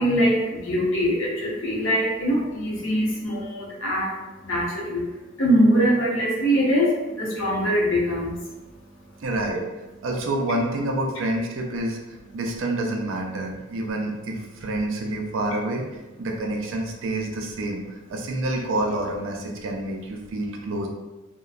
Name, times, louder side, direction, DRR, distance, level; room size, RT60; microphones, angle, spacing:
voice 1, 0.0-9.3 10.0-10.1, equal, 80° left, -5 dB, 0.8 m, -23 dB
voice 2, 9.2-9.6 10.0-12.0 12.3-15.9 16.2-20.9, right 1 dB, 75° right, 1 dB, 0.4 m, -28 dB
2.8 x 2.1 x 2.4 m, 1.1 s
head